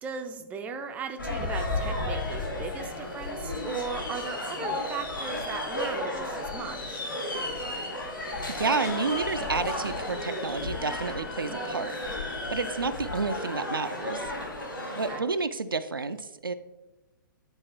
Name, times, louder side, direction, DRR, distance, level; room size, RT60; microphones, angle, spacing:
voice 1, 0.0-7.1 15.1-15.2, right 6 dB, 10° right, 7 dB, 0.4 m, -37 dB
sound 1, 0.9-14.1, left 2 dB, 85° left, 1.3 m, -47 dB
sound 2, 1.2-15.2, left 1 dB, 70° left, 1.5 m, -33 dB
voice 2, 8.5-14.3 15.0-16.5, right 4 dB, 80° right, 9 dB, 0.4 m, -30 dB
sound 3, 8.8-12.1 13.5-13.6, left 4 dB, 40° left, 0.7 m, -47 dB
9.6 x 4.0 x 2.9 m, 1.0 s
figure-of-eight pair, 115°, 11 cm